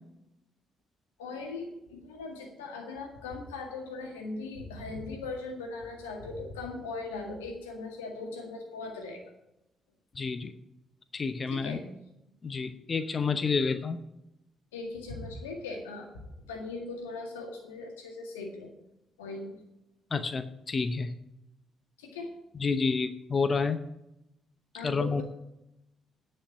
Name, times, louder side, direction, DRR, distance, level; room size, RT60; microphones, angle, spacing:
voice 1, 1.2-9.2 11.5-11.8 14.7-18.7 19.2-19.6 22.0-22.3 24.7-25.2, left 3 dB, 90° left, 2 dB, 1.8 m, -39 dB
voice 2, 10.1-10.5 11.1-11.8 12.4-14.0 20.1-21.1 22.6-23.8 24.8-25.2, left 4 dB, 40° left, 11 dB, 0.8 m, -29 dB
10.0 x 5.7 x 8.5 m, 0.86 s
hypercardioid pair, 45°, 0 cm